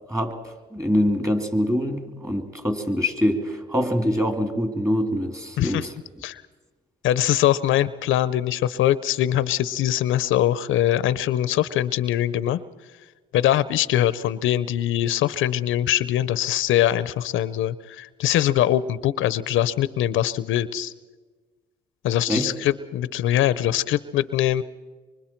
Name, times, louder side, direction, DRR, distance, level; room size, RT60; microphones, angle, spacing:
voice 1, 0.1-5.9 22.3-22.5, equal, 15° right, 6 dB, 2.6 m, -24 dB
voice 2, 5.6-5.9 6.2-6.4 7.0-12.6 13.3-20.9 22.0-24.6, left 12 dB, 80° left, 17 dB, 0.6 m, -22 dB
24.5 x 24.5 x 4.5 m, 1.3 s
cardioid pair, 90°, 20 cm